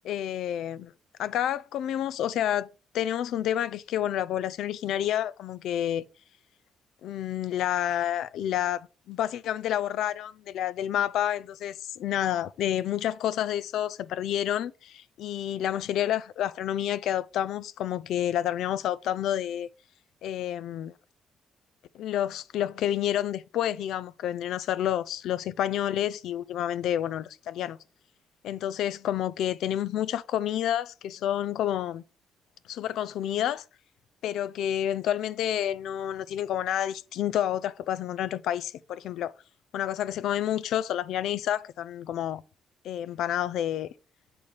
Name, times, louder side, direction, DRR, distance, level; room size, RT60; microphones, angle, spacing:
voice 1, 0.1-0.9 1.2-2.7 2.9-6.0 7.0-19.7 20.2-20.9 21.9-27.8 28.4-32.0 32.7-33.6 34.2-39.3 39.7-42.4 42.8-43.9, left 11 dB, 80° left, 0.4 m, -29 dB
7.0 x 4.1 x 4.9 m
cardioid pair, 90°, 0 cm